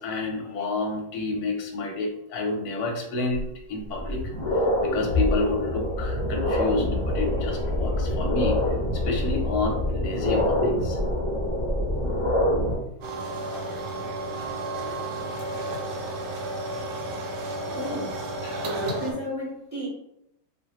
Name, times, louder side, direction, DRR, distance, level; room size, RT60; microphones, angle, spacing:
voice 1, 0.0-3.4 3.7-4.2 4.5-8.6 8.9-11.0 18.4-18.6, left 3 dB, 65° left, 0 dB, 1.0 m, -29 dB
sound 1, 3.3-3.4 3.9-12.7, left 1 dB, 30° left, 0.5 m, -25 dB
sound 2, 13.0-19.1, right 2 dB, 75° right, 1.1 m, -32 dB
voice 2, 17.6-18.2 18.6-19.9, equal, 25° right, -7 dB, 0.5 m, -32 dB
2.8 x 2.5 x 2.9 m, 0.77 s
omnidirectional pair, 2.0 m